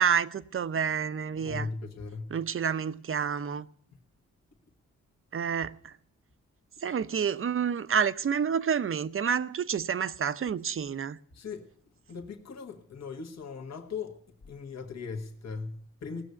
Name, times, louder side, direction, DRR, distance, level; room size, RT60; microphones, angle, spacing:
voice 1, 0.0-1.7 2.3-3.7 5.3-5.9 6.8-11.2, right 7 dB, 45° right, 0.7 m, -29 dB
voice 2, 1.4-2.3 11.3-11.7 12.1-14.2 14.4-16.2, left 5 dB, 65° left, 1.6 m, -38 dB
18.5 x 6.8 x 9.6 m
cardioid pair, 95°, 29 cm